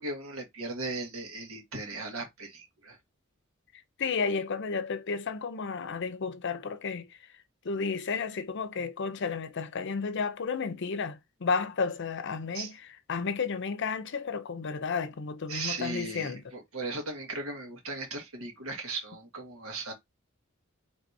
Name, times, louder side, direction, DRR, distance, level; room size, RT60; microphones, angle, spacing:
voice 1, 0.0-3.0 12.5-12.7 15.5-19.9, right 2 dB, 85° right, 1.6 m, -37 dB
voice 2, 4.0-7.1 7.6-12.8 13.1-16.4, left 5 dB, 60° left, 0.6 m, -32 dB
4.6 x 3.2 x 2.7 m
head